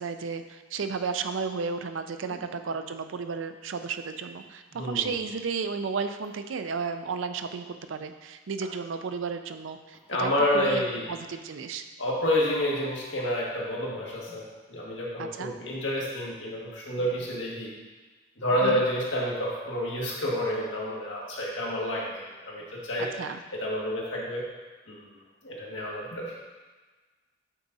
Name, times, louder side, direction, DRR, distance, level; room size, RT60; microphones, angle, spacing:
voice 1, 0.0-11.8 15.2-15.5 18.6-18.8 23.0-23.4, right 5 dB, 80° right, 8 dB, 0.5 m, -33 dB
voice 2, 4.7-5.1 10.1-11.0 12.0-17.8 18.4-23.1 23.5-24.4 24.9-25.1 25.4-26.3, left 1 dB, 75° left, -4 dB, 1.7 m, -29 dB
8.2 x 4.0 x 4.0 m, 1.3 s
head